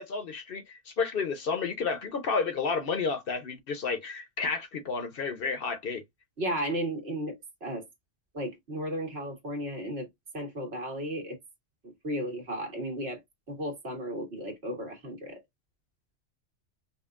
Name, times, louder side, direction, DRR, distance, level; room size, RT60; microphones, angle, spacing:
voice 1, 0.0-6.0, left 5 dB, 60° left, 0.8 m, -31 dB
voice 2, 6.4-7.9 8.3-10.1 10.3-11.4 11.8-13.2 13.5-15.4, equal, 65° right, 1.7 m, -34 dB
5.2 x 2.4 x 2.4 m
omnidirectional pair, 1.2 m